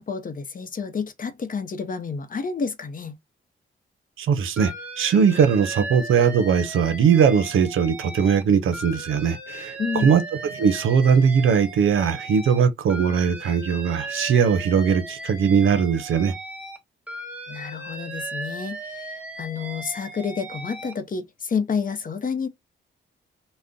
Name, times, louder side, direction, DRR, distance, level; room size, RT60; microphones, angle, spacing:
voice 1, 0.0-3.1 9.8-10.1 17.5-22.5, left 5 dB, 40° left, 0.6 m, -29 dB
voice 2, 4.2-10.2 10.5-16.3, right 7 dB, 75° right, 0.6 m, -20 dB
Alarm, 4.6-8.4 8.7-12.6 12.9-16.8 17.1-20.9, right 2 dB, 5° right, 1.0 m, -37 dB
2.5 x 2.1 x 3.5 m
cardioid pair, 70°, 21 cm